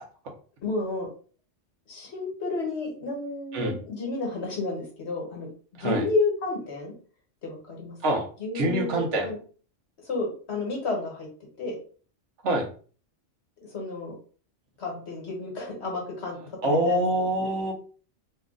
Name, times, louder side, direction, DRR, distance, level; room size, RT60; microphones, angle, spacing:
voice 1, 0.6-1.1 1.9-6.9 7.4-7.9 8.4-9.4 10.0-11.3 11.6-11.7 13.6-14.1 14.8-17.0, left 3 dB, 65° left, -1 dB, 1.4 m, -31 dB
voice 2, 8.5-9.3 12.4-12.7 16.6-17.7, right 1 dB, 70° right, 1 dB, 1.1 m, -25 dB
3.2 x 2.4 x 3.7 m, 0.42 s
omnidirectional pair, 1.3 m